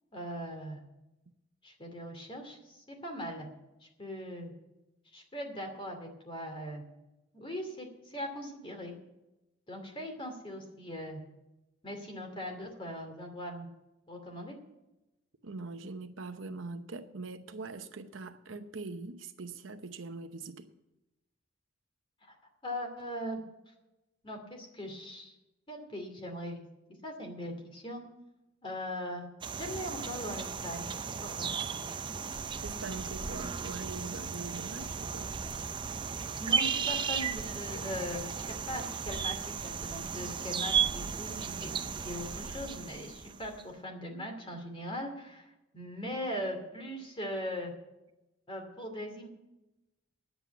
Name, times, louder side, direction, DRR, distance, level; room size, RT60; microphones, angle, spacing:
voice 1, 0.1-0.8 1.6-3.5 3.8-4.5 5.1-6.8 7.3-8.9 9.7-11.2 11.8-13.7 14.1-14.6 22.3-22.4 22.6-23.4 24.2-25.3 25.7-26.6 27.0-28.0 28.6-29.3 29.6-30.9 31.2-31.5 36.4-47.7 48.5-49.3, equal, 25° left, 2.5 m, -40 dB
voice 2, 15.4-20.7 32.6-35.3, right 3 dB, 75° right, 0.9 m, -42 dB
sound 1, 29.4-43.6, right 6 dB, 25° right, 0.4 m, -35 dB
9.9 x 8.2 x 9.2 m
head